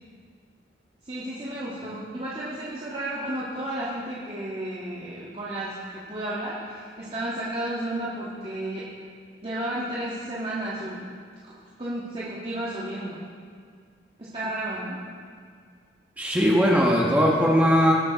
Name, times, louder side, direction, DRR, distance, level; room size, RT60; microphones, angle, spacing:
voice 1, 1.0-8.9 9.4-11.1 11.8-13.2 14.2-15.0, right 1 dB, 30° right, -8 dB, 1.6 m, -32 dB
voice 2, 16.2-17.9, equal, 10° right, -3 dB, 1.2 m, -19 dB
20.5 x 6.9 x 4.0 m, 2.1 s
head